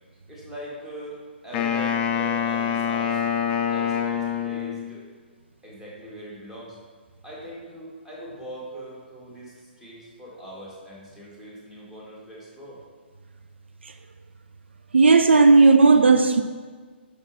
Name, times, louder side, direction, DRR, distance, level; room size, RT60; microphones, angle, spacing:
voice 1, 0.3-3.4 3.7-5.1 5.6-6.8 7.2-12.8, equal, 5° right, 1.6 m, -41 dB
Wind instrument woodwind instrument, 1.5-5.0, left 8 dB, 25° left, 0.5 m, -25 dB
voice 2, 14.9-16.4, right 4 dB, 75° right, 0.3 m, -14 dB
7.0 x 5.9 x 2.7 m
figure-of-eight pair, 130°, 6 cm